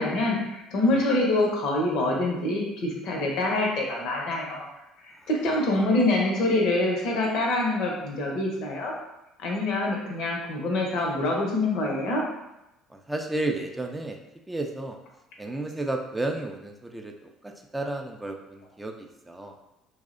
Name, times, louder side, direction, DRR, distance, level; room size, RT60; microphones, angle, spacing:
voice 1, 0.0-4.7 5.0-8.9 9.4-12.2, left 2 dB, 65° left, -1 dB, 0.6 m, -25 dB
voice 2, 12.9-14.2 14.5-15.0 15.4-19.5, right 2 dB, 15° right, 2 dB, 0.3 m, -33 dB
2.6 x 2.0 x 2.4 m, 0.90 s
hypercardioid pair, 60°, 0 cm